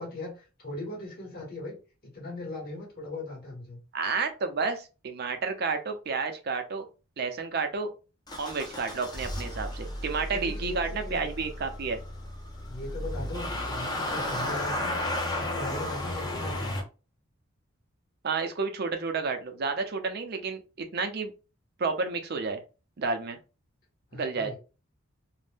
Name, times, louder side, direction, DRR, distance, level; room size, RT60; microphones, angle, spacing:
voice 1, 0.0-1.7 2.0-3.8 10.3-11.3 12.6-15.0 15.3-16.8 24.1-24.6, left 2 dB, 45° left, -3 dB, 1.2 m, -39 dB
voice 2, 3.9-6.9 7.2-7.9 8.4-12.0 18.2-21.3 21.8-22.6 23.0-23.4 24.1-24.6, right 4 dB, 50° right, 6 dB, 0.5 m, -31 dB
Motor vehicle (road) / Engine starting, 8.3-16.8, left 1 dB, 20° left, 0.5 m, -33 dB
2.5 x 2.1 x 3.3 m, 0.32 s
head